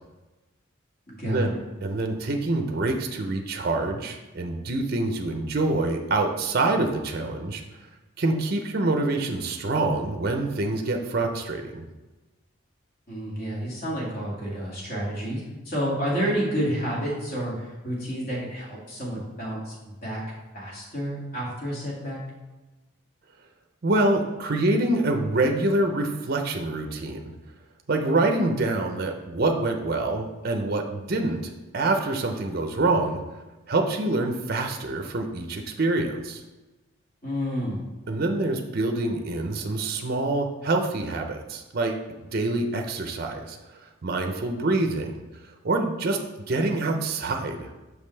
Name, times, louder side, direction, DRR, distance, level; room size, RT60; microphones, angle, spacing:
voice 1, 1.2-1.6 13.1-20.2 20.5-22.2 37.2-37.8, equal, 45° left, -5 dB, 2.1 m, -30 dB
voice 2, 1.8-7.6 8.2-11.8 23.8-27.3 27.9-33.2 33.7-36.4 38.1-42.0 42.3-43.6 44.0-45.2 45.6-46.2 46.5-47.8, right 2 dB, 50° right, 4 dB, 0.5 m, -26 dB
6.2 x 5.3 x 3.2 m, 1.1 s
head